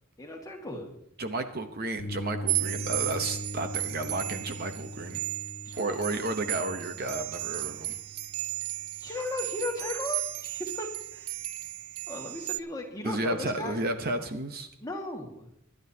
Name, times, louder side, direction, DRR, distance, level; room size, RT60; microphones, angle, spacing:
voice 1, 0.2-0.9 5.6-6.0 9.0-11.4 12.1-13.8 14.8-15.5, left 2 dB, 15° left, 1 dB, 1.8 m, -36 dB
voice 2, 1.2-5.2 5.8-8.0 13.0-14.7, right 2 dB, 45° right, 7 dB, 0.9 m, -32 dB
sound 1, 2.0-9.7, left 1 dB, 80° left, 1.4 m, -41 dB
sound 2, 2.5-12.6, right 17 dB, 80° right, 0.5 m, -35 dB
24.5 x 11.5 x 2.8 m, 0.73 s
head